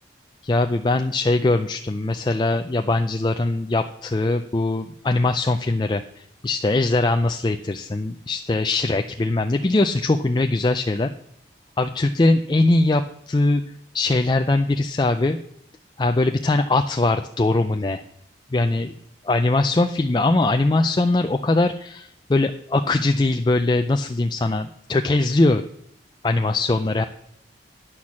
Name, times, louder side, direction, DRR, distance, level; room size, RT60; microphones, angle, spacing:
voice 1, 0.4-11.1 11.8-13.6 13.9-15.4 16.0-18.0 18.5-19.0 19.2-25.6 26.2-27.0, left 2 dB, 25° left, 7 dB, 0.4 m, -21 dB
10.0 x 6.3 x 7.3 m, 0.70 s
head